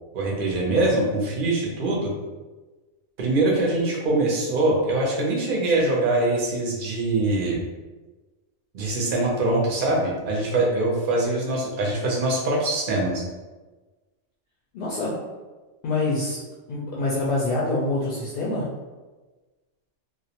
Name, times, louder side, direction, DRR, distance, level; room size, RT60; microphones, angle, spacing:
voice 1, 0.1-2.1 3.2-7.6 8.7-13.2, right 2 dB, 55° right, -2 dB, 0.6 m, -23 dB
voice 2, 14.7-15.1 15.8-16.4 16.7-18.7, left 2 dB, 65° left, -5 dB, 0.5 m, -25 dB
2.3 x 2.1 x 2.8 m, 1.2 s
omnidirectional pair, 1.3 m